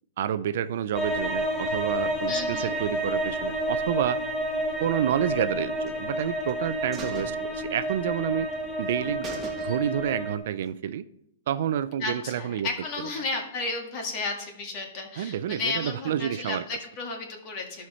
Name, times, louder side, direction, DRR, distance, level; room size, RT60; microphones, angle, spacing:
voice 1, 0.2-4.2 4.8-8.5 8.8-9.3 9.6-11.0 11.5-12.7 15.2-16.6, right 10 dB, 60° right, 13 dB, 0.4 m, -29 dB
sound 1, 0.9-10.4, right 1 dB, 5° left, 1.0 m, -30 dB
voice 2, 2.3-2.7 12.0-17.9, left 3 dB, 35° left, 2 dB, 1.9 m, -33 dB
sound 2, 5.8-6.5 6.9-8.2 8.5-8.6 8.9-9.0 9.2-10.1 10.5-10.6, right 4 dB, 15° right, 1.5 m, -42 dB
12.5 x 5.7 x 4.3 m, 0.76 s
hypercardioid pair, 155°, 0 cm